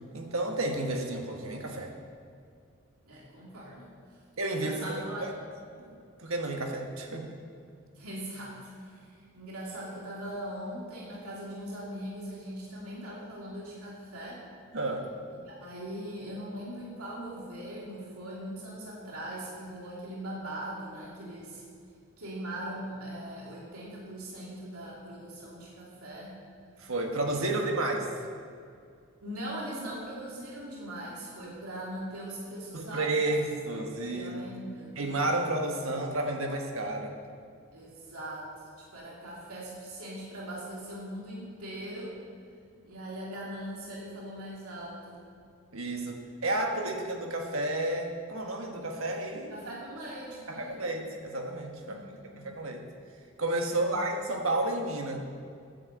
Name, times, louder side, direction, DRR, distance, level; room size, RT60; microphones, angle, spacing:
voice 1, 0.1-1.9 4.4-5.3 5.8-7.4 14.7-15.1 26.8-28.1 32.7-34.3 35.0-37.1 45.7-49.5 50.5-52.0 52.4-52.8 53.4-55.2, right 2 dB, 65° right, 2 dB, 1.5 m, -31 dB
voice 2, 3.0-3.9 4.5-5.3 7.9-14.4 15.3-21.6 22.2-26.4 27.3-27.6 29.2-33.2 34.1-34.9 37.7-38.5 38.8-42.2 42.8-45.2 49.5-50.8 51.8-52.5 53.6-54.0, right 1 dB, 85° right, -5 dB, 2.8 m, -40 dB
10.5 x 7.9 x 8.0 m, 2.2 s
head